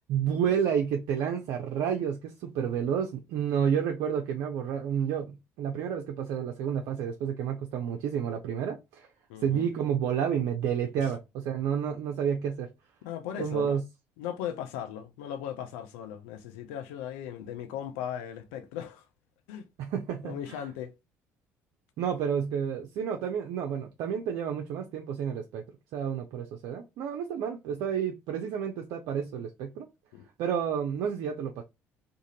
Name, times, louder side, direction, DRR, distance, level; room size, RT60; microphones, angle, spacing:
voice 1, 0.0-9.1 9.4-12.7 13.4-13.8 19.8-20.6 22.0-25.6 25.9-29.9 30.4-31.6, right 8 dB, 65° right, 0.5 m, -30 dB
voice 2, 9.3-9.7 11.0-11.1 13.0-13.8 14.2-19.1 19.5-19.6 20.2-20.9 30.1-30.3, left 10 dB, 75° left, 0.4 m, -38 dB
2.5 x 2.5 x 2.7 m
hypercardioid pair, 60°, 7 cm